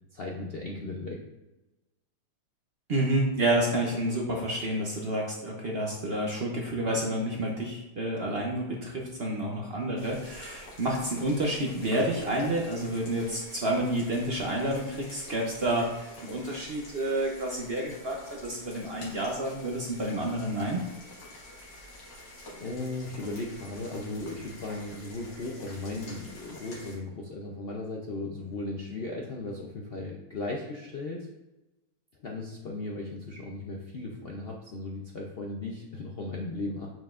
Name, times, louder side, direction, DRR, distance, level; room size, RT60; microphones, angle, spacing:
voice 1, 0.1-1.2 22.6-31.3 32.2-36.9, left 2 dB, 55° left, -1 dB, 0.6 m, -36 dB
voice 2, 2.9-20.8, right 1 dB, 45° right, -1 dB, 0.8 m, -29 dB
sound 1, 10.0-27.0, left 1 dB, 85° left, 2.2 m, -48 dB
6.9 x 6.1 x 2.5 m, 1.0 s
omnidirectional pair, 1.8 m